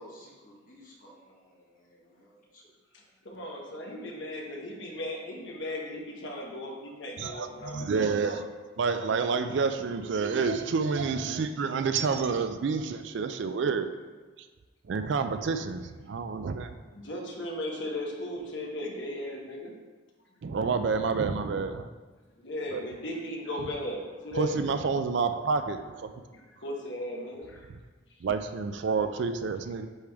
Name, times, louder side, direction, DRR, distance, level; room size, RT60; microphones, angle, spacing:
voice 1, 0.0-2.7 3.0-3.1 16.4-16.6 19.2-19.4 26.3-26.5 27.1-27.3, equal, 40° left, -3 dB, 1.3 m, -55 dB
voice 2, 3.2-8.4 16.9-19.7 22.4-24.5 26.3-27.6, left 1 dB, 60° left, 0 dB, 1.1 m, -36 dB
voice 3, 7.2-8.5 8.8-13.9 14.9-16.8 20.4-21.9 22.7-22.8 24.3-26.1 28.2-29.9, right 5 dB, 55° right, 9 dB, 0.3 m, -29 dB
9.8 x 3.5 x 3.5 m, 1.3 s
head